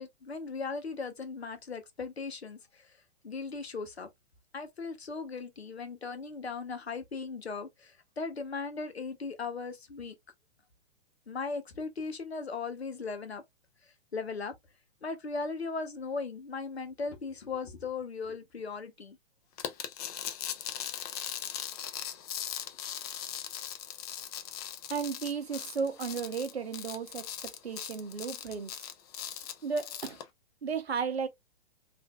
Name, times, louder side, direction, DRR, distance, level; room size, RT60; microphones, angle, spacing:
voice 1, 0.0-3.0 3.2-4.1 4.5-10.2 11.3-13.4 14.1-14.5 15.0-19.2 29.3-29.5, left 4 dB, 90° left, 0.9 m, -38 dB
sound 1, 19.6-30.2, left 10 dB, 40° left, 0.5 m, -39 dB
voice 2, 24.9-28.9 29.6-30.2 30.6-31.3, right 5 dB, 90° right, 0.7 m, -34 dB
3.3 x 2.6 x 2.3 m
figure-of-eight pair, 120°, 31 cm